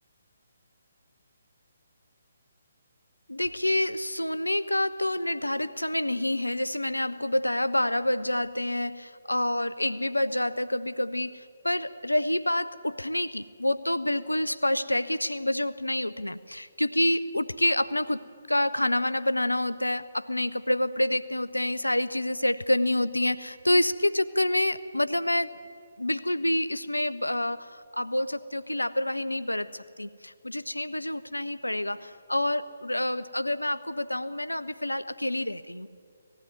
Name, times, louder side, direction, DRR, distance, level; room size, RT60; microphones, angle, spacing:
voice 1, 3.3-18.2 18.5-25.6 26.0-35.9, left 1 dB, 85° left, 14 dB, 0.5 m, -28 dB
19.0 x 15.0 x 9.3 m, 2.3 s
figure-of-eight pair, 140°, 0 cm